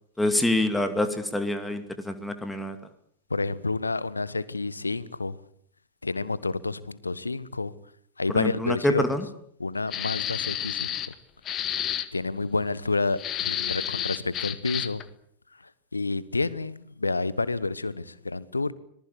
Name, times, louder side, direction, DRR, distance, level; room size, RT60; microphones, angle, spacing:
voice 1, 0.2-2.8 8.3-9.2, left 1 dB, 5° left, 2.4 m, -26 dB
voice 2, 3.3-5.4 6.0-7.7 8.2-9.0 9.6-11.1 12.1-15.0 15.9-18.7, left 3 dB, 80° left, 1.2 m, -29 dB
Spray Paint, 9.9-11.1 11.5-12.1 13.2-15.0, left 10 dB, 30° left, 1.8 m, -30 dB
26.0 x 19.5 x 8.4 m
figure-of-eight pair, 90°, 0 cm